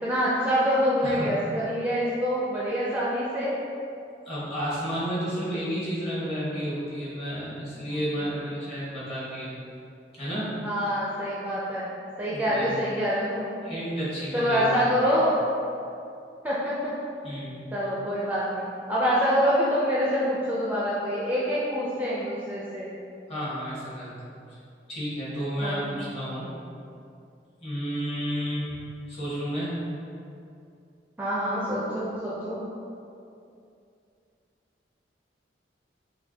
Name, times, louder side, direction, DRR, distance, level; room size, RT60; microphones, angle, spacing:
voice 1, 0.0-3.5 7.8-8.0 10.6-11.9 12.2-13.5 14.3-15.4 16.4-16.7 17.7-18.6 18.9-22.9 25.6-25.8 31.2-32.6, equal, 10° right, -8 dB, 0.4 m, -26 dB
voice 2, 4.2-9.5 10.2-10.5 12.3-12.7 13.6-14.6 17.2-17.6 23.3-24.6 24.9-26.5 27.6-28.8 29.1-29.8, equal, 35° left, -9 dB, 1.3 m, -31 dB
5.5 x 2.2 x 2.7 m, 2.5 s
head